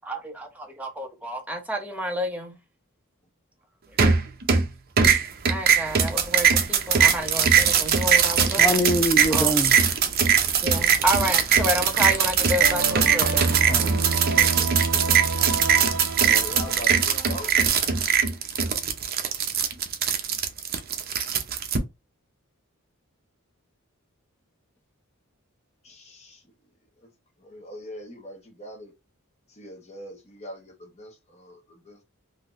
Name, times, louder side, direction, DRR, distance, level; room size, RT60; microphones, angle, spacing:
voice 1, 0.0-2.6 5.5-8.8 9.3-9.5 10.6-13.5, equal, 5° right, 0.8 m, -29 dB
sound 1, 4.0-4.7 5.0-21.8, right 7 dB, 45° right, 0.6 m, -21 dB
voice 2, 8.6-9.7 13.7-14.1 14.4-15.0, equal, 10° left, 0.3 m, -26 dB
sound 2, 12.6-18.0, right 3 dB, 80° right, 0.7 m, -29 dB
voice 3, 16.2-17.5 25.8-26.4 27.0-27.1 27.4-28.9 29.5-32.0, equal, 30° left, 1.1 m, -41 dB
3.8 x 2.7 x 2.5 m
head